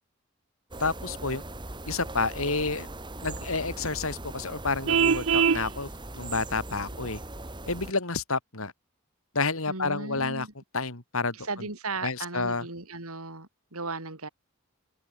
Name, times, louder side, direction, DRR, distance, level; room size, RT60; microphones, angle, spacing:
sound 1, 0.7-7.9, right 2 dB, 20° right, 3.1 m, -40 dB
voice 1, 0.8-1.4 1.9-2.9 3.2-5.9 6.2-7.2 7.7-8.7 9.3-10.5 10.7-11.7 12.0-12.7, left 3 dB, 75° left, 3.2 m, -30 dB
Vehicle horn car horn honking, 4.9-5.7, right 6 dB, 65° right, 0.6 m, -22 dB
voice 2, 9.7-10.5 11.5-14.3, right 3 dB, 85° right, 4.0 m, -36 dB
head